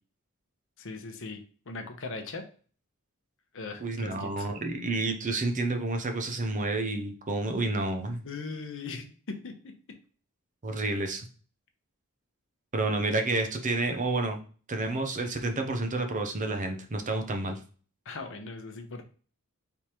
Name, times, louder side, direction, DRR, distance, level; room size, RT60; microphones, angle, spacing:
voice 1, 0.8-1.4 1.7-2.4 3.5-4.5 8.2-9.7 18.1-19.0, left 3 dB, 65° left, 6 dB, 0.8 m, -39 dB
voice 2, 3.8-8.2 10.6-11.3 12.7-14.4 14.7-17.6, right 2 dB, 35° right, 6 dB, 0.6 m, -30 dB
4.7 x 3.5 x 2.9 m, 0.39 s
head